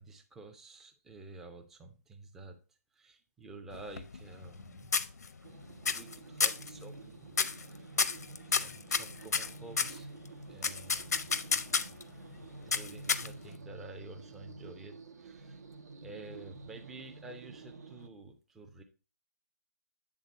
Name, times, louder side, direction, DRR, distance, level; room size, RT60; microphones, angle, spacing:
voice 1, 0.0-2.6 2.9-4.9 5.8-8.1 8.5-10.2 10.5-11.3 12.3-15.6 16.0-18.8, right 3 dB, 5° right, 4 dB, 0.3 m, -50 dB
sound 1, 3.7-4.6 4.9-5.5 5.8-6.1 6.4-6.7 7.3-7.6 8.0-10.0 10.6-12.0 12.7-13.5, left 5 dB, 85° left, 0.6 m, -30 dB
sound 2, 5.4-18.1, right 3 dB, 85° right, 0.9 m, -49 dB
8.1 x 3.8 x 3.9 m, 0.35 s
hypercardioid pair, 165°, 9 cm